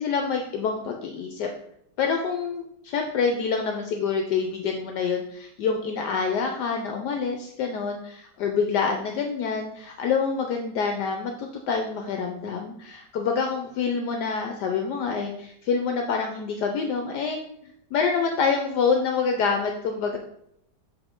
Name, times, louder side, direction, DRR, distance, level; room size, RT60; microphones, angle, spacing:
voice 1, 0.0-1.5 2.0-17.4 17.9-20.2, left 5 dB, 70° left, 3 dB, 1.1 m, -26 dB
7.0 x 3.7 x 3.7 m, 0.74 s
omnidirectional pair, 2.0 m